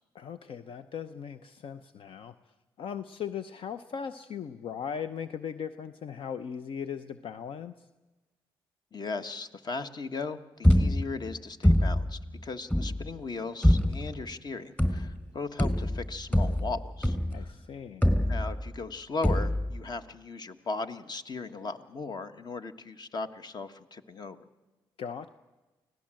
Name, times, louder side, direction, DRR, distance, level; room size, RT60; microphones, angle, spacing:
voice 1, 0.1-2.3 2.8-7.7 17.3-18.1 25.0-25.3, left 7 dB, 65° left, 10 dB, 0.8 m, -38 dB
voice 2, 8.9-17.5 18.3-24.4, left 3 dB, 45° left, 9 dB, 1.5 m, -37 dB
sound 1, 10.6-11.3 11.6-12.2 12.7-13.1 13.6-14.1 14.8-15.3 15.6-17.5 18.0-18.8 19.2-19.8, left 1 dB, 15° left, 3.6 m, -24 dB
24.5 x 17.0 x 7.7 m, 1.2 s
supercardioid pair, 60°, 10 cm